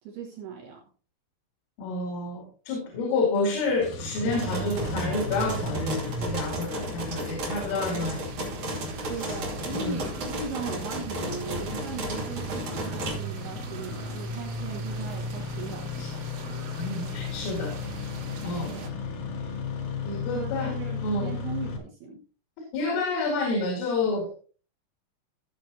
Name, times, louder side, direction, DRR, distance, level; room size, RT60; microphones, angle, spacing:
voice 1, 0.0-0.8 9.1-16.3 18.7-18.9 20.3-22.2, right 5 dB, 65° right, 0 dB, 2.8 m, -38 dB
voice 2, 1.8-8.3 9.2-9.4 9.7-10.0 16.0-16.1 16.8-17.7 18.4-18.8 20.0-21.3 22.7-24.3, left 3 dB, 85° left, 1 dB, 4.6 m, -29 dB
Engine starting, 3.6-21.8, left 3 dB, 65° left, 2.0 m, -35 dB
sound 1, 4.3-13.1, right 1 dB, 45° right, 3.4 m, -34 dB
sound 2, 7.8-18.9, right 8 dB, 90° right, 4.1 m, -46 dB
15.0 x 6.9 x 2.8 m, 0.38 s
omnidirectional pair, 5.6 m